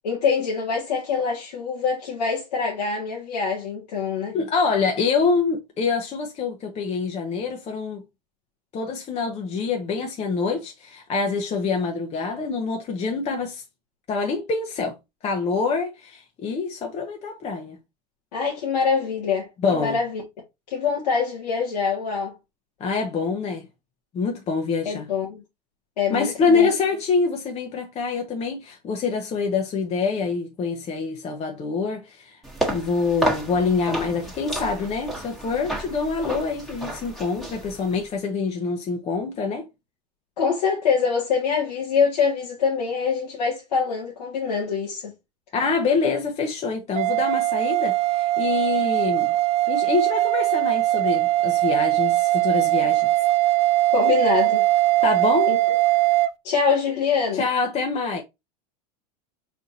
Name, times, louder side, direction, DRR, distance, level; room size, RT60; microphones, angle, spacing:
voice 1, 0.0-4.4 18.3-20.2 20.7-22.3 24.9-25.4 26.0-26.7 40.4-45.1 53.9-54.6 55.5-55.8 56.4-57.5, left 5 dB, 85° left, 1.9 m, -24 dB
voice 2, 4.3-8.0 8.7-13.6 14.1-15.0 15.2-17.8 19.6-20.0 22.8-23.7 24.1-25.1 26.1-32.4 32.7-39.7 45.5-49.4 49.7-53.1 55.0-55.5 57.3-58.2, left 4 dB, 30° left, 1.0 m, -25 dB
sound 1, 32.4-38.1, right 1 dB, ahead, 1.4 m, -31 dB
sound 2, 47.0-56.3, right 17 dB, 30° right, 0.4 m, -21 dB
4.7 x 4.2 x 2.7 m
supercardioid pair, 110°, 21 cm